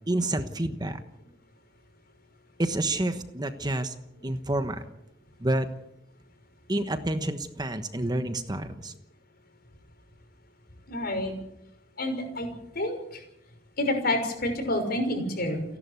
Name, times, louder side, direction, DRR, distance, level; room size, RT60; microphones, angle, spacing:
voice 1, 0.1-1.0 2.6-3.9 4.2-4.8 5.4-5.7 6.7-8.9, right 1 dB, 20° right, 8 dB, 1.2 m, -28 dB
voice 2, 10.9-11.3 12.0-12.5 12.7-13.2 13.8-15.6, left 1 dB, 55° left, 5 dB, 6.0 m, -28 dB
29.5 x 11.5 x 8.3 m, 0.82 s
head